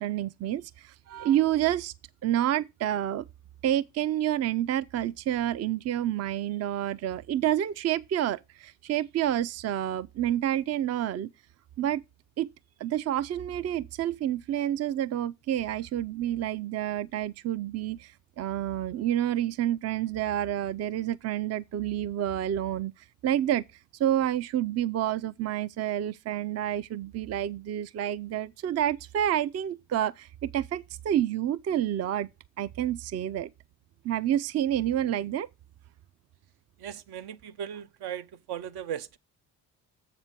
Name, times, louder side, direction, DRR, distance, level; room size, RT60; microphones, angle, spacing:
voice 1, 0.0-1.9 2.2-3.3 3.6-11.3 11.8-12.0 12.4-12.5 12.8-23.6 23.9-32.3 32.6-33.5 34.0-35.5, right 11 dB, 40° right, 0.5 m, -29 dB
voice 2, 36.8-39.2, right 9 dB, 65° right, 0.8 m, -37 dB
7.3 x 6.1 x 5.1 m
supercardioid pair, 70°, 41 cm